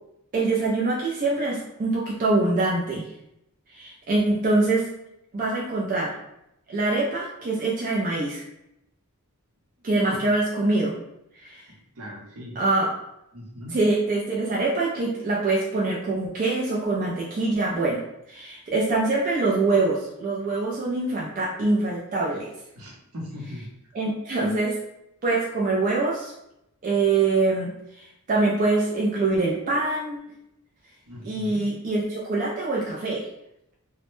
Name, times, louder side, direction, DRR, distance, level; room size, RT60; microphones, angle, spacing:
voice 1, 0.3-3.1 3.7-4.9 5.3-6.1 6.7-8.4 9.8-11.0 11.4-11.6 12.6-12.9 13.7-18.0 18.3-22.5 23.9-24.7 25.2-26.3 26.8-30.2 31.2-33.3, right 3 dB, 40° right, -4 dB, 0.3 m, -24 dB
voice 2, 11.7-12.6 13.3-13.8 22.7-23.7 24.4-24.5 31.1-31.6, left 1 dB, 70° right, -2 dB, 0.7 m, -39 dB
2.1 x 2.0 x 2.9 m, 0.82 s
head